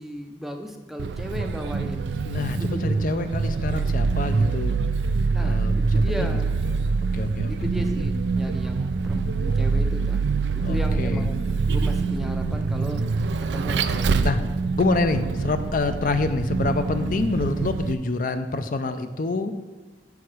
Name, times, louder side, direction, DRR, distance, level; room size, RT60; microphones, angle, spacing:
voice 1, 0.0-2.2 2.6-2.8 5.3-6.6 7.5-10.2 10.5-11.4 11.7-13.0 13.5-14.5 16.0-16.2, equal, ahead, 5 dB, 0.5 m, -36 dB
Vehicle, 1.0-17.9, right 4 dB, 75° right, 0.4 m, -25 dB
voice 2, 2.2-4.7 5.4-6.3 6.6-6.8 7.1-7.7 10.6-11.3 14.2-14.4 14.8-19.5, left 3 dB, 45° left, 9 dB, 0.4 m, -27 dB
8.1 x 4.8 x 6.1 m, 1.2 s
head